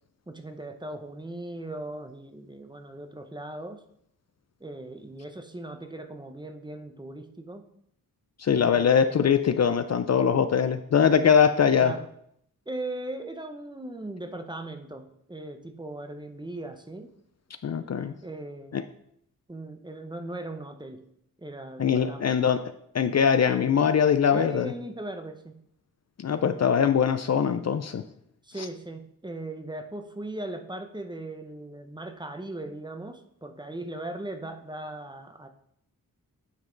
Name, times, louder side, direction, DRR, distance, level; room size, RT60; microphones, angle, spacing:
voice 1, 0.3-3.8 4.6-7.6 8.5-8.9 11.8-12.1 12.7-17.1 18.2-18.9 19.5-21.1 21.4-22.4 24.3-25.6 28.4-35.5, right 1 dB, 10° right, 6 dB, 0.7 m, -38 dB
voice 2, 8.4-11.9 17.6-18.1 18.7-18.8 21.8-22.6 22.9-24.7 26.2-28.0, left 7 dB, 45° left, 10 dB, 0.5 m, -22 dB
9.1 x 5.4 x 3.9 m, 0.71 s
wide cardioid pair, 95°, 36 cm